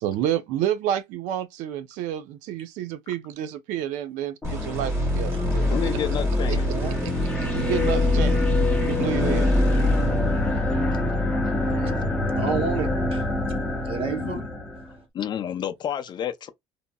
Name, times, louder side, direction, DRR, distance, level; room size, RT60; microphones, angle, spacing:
voice 1, 0.0-6.0 6.5-6.6 7.0-7.1 7.4-8.4 8.8-9.5 11.6-12.0, right 11 dB, 75° right, 0.4 m, -29 dB
sound 1, 4.4-14.9, left 2 dB, 5° left, 0.8 m, -26 dB
sound 2, 4.4-10.9, equal, 25° right, 1.5 m, -27 dB
voice 2, 5.7-6.7 10.0-10.1 14.1-14.5 15.1-16.5, left 9 dB, 35° left, 0.4 m, -30 dB
voice 3, 6.5-7.0 12.4-13.2 13.9-14.4, right 5 dB, 45° right, 0.8 m, -30 dB
2.7 x 2.6 x 2.2 m
cardioid pair, 145°, 13 cm